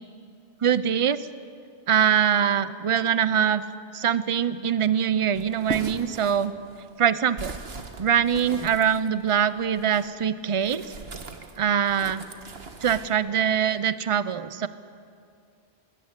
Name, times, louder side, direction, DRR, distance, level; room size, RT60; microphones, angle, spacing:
voice 1, 0.6-1.2 1.9-3.6 3.9-6.5 7.0-7.5 8.0-10.9 11.6-12.2 12.8-14.7, right 8 dB, 35° right, 15 dB, 0.6 m, -23 dB
sound 1, 5.3-10.1 10.6-13.1, right 3 dB, 70° right, 1.6 m, -39 dB
20.5 x 17.5 x 9.8 m, 2.4 s
omnidirectional pair, 1.1 m